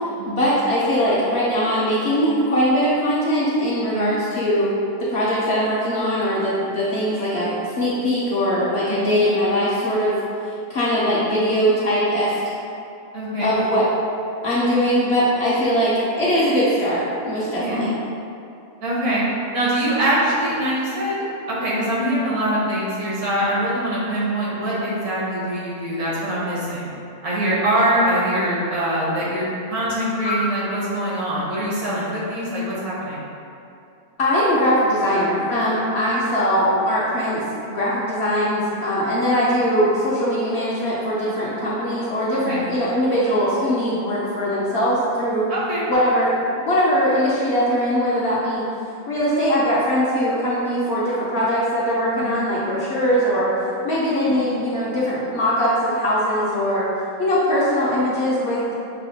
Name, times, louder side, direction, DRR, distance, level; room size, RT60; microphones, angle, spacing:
voice 1, 0.3-4.7 5.0-10.2 10.7-12.4 13.4-13.8 14.4-17.9 34.2-45.5 45.9-48.6 49.1-53.5 53.8-56.9 57.2-58.7, equal, 65° left, -7 dB, 0.7 m, -21 dB
voice 2, 3.9-4.2 8.9-9.2 13.1-13.6 17.6-17.9 18.8-19.2 19.5-26.9 27.2-33.2 42.3-42.6 45.5-45.8 52.1-52.3 54.3-54.4, right 1 dB, 85° right, -8 dB, 1.5 m, -23 dB
5.4 x 2.1 x 2.7 m, 2.6 s
omnidirectional pair, 1.5 m